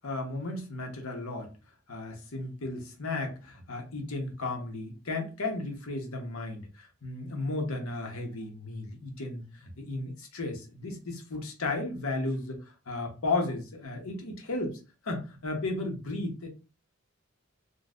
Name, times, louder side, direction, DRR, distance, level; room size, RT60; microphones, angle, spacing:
voice 1, 0.0-1.5 1.9-16.5, left 2 dB, 85° left, 2 dB, 0.9 m, -34 dB
3.8 x 2.2 x 2.4 m, 0.32 s
head